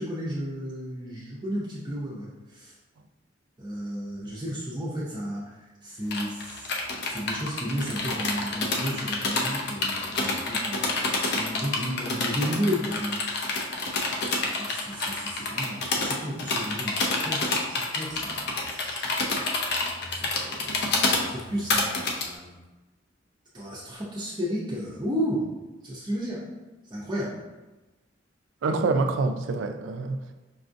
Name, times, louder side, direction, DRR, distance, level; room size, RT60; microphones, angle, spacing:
voice 1, 0.0-2.7 3.6-13.2 13.8-19.1 20.1-22.6 23.5-25.5 25.8-26.5 26.9-27.4, equal, 20° right, 0.5 m, -33 dB
sound 1, 6.1-22.2, left 3 dB, 55° left, 0.5 m, -28 dB
voice 2, 28.6-30.3, right 3 dB, 70° right, 0.3 m, -26 dB
5.2 x 2.4 x 2.5 m
head